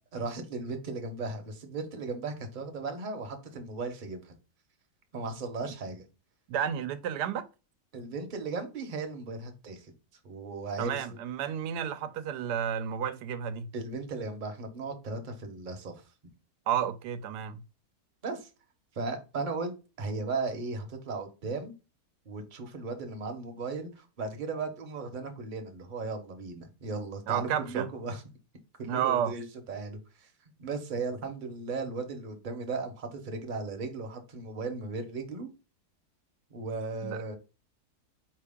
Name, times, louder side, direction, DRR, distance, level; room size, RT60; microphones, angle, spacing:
voice 1, 0.1-4.3 5.1-6.1 7.9-9.9 10.2-11.1 13.7-16.0 18.2-18.5 18.9-21.7 22.2-28.2 28.8-30.3 30.6-35.5 36.5-37.3, right 3 dB, 40° right, 0.8 m, -36 dB
voice 2, 6.5-7.4 10.8-13.7 16.7-17.6 27.3-27.9 28.8-29.3 37.0-37.4, right 9 dB, 90° right, 1.1 m, -31 dB
4.5 x 2.9 x 3.5 m
omnidirectional pair, 1.7 m